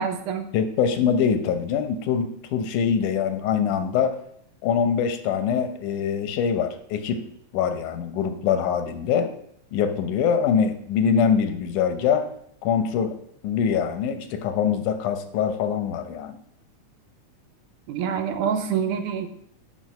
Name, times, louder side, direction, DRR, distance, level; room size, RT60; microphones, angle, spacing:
voice 1, 0.0-0.5 17.9-19.3, right 7 dB, 90° right, 8 dB, 2.3 m, -26 dB
voice 2, 0.5-4.2 4.6-9.3 9.7-12.3 12.6-16.4, left 7 dB, 90° left, 9 dB, 2.4 m, -24 dB
7.8 x 5.3 x 6.5 m, 0.71 s
omnidirectional pair, 3.5 m